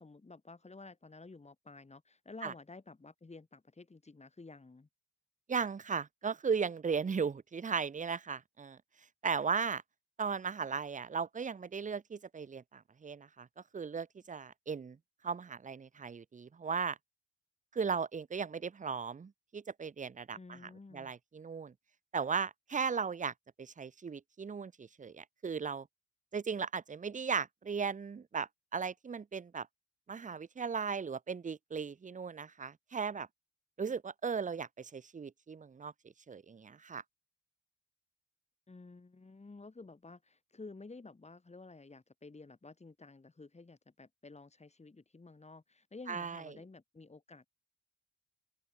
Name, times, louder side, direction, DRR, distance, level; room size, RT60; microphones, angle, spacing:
voice 1, 0.0-4.9 20.3-21.1 38.7-47.5, left 3 dB, 20° left, 5.1 m, -52 dB
voice 2, 5.5-8.8 9.2-9.8 10.2-13.5 13.7-15.0 15.2-17.0 17.7-20.4 20.9-21.7 22.1-25.9 26.3-29.7 30.1-33.3 33.8-35.9 36.3-37.0 46.1-46.4, right 6 dB, 25° right, 0.8 m, -37 dB
open air
cardioid pair, 90°, 30 cm